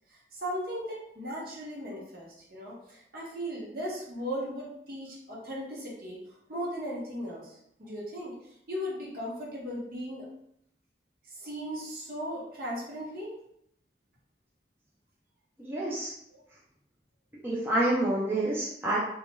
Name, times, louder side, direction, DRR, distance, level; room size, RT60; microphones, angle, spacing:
voice 1, 0.1-10.3 11.2-13.4 16.3-16.4, equal, 55° right, -4 dB, 0.8 m, -37 dB
voice 2, 15.6-16.1 17.4-19.0, right 1 dB, 15° right, -7 dB, 0.4 m, -28 dB
2.3 x 2.1 x 2.9 m, 0.74 s
head